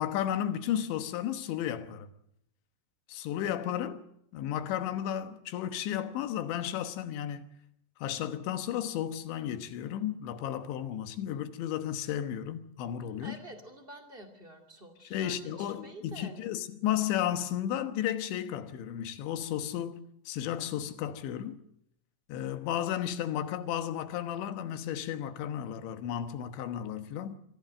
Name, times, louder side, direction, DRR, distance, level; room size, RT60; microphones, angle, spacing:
voice 1, 0.0-2.1 3.1-4.0 4.3-7.4 8.0-13.4 15.1-21.6 22.3-27.4, left 10 dB, 80° left, 3.5 m, -33 dB
voice 2, 13.0-16.4, right 1 dB, 20° right, 1.5 m, -49 dB
24.5 x 15.0 x 7.7 m
omnidirectional pair, 5.2 m